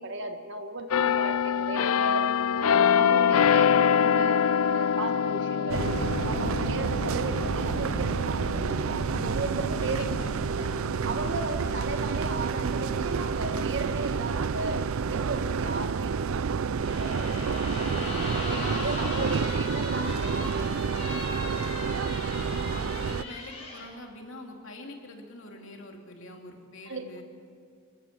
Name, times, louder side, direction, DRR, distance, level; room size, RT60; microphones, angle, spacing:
voice 1, 0.0-2.3 2.6-6.0 6.2-10.1 10.6-10.7 11.0-17.8 18.5-20.8 26.9-27.0, right 2 dB, 55° right, 6 dB, 1.7 m, -35 dB
sound 1, 0.9-12.4 12.9-13.1, left 7 dB, 85° left, 0.5 m, -26 dB
sound 2, 5.7-23.2, right 5 dB, 75° right, 0.5 m, -29 dB
voice 2, 9.8-10.4 17.7-18.2 18.9-19.5 21.5-21.7 22.4-27.2, left 1 dB, 60° left, 2 dB, 2.9 m, -45 dB
sound 3, 16.8-23.9, left 2 dB, 30° left, 5.5 m, -38 dB
27.0 x 14.0 x 7.5 m, 2.3 s
head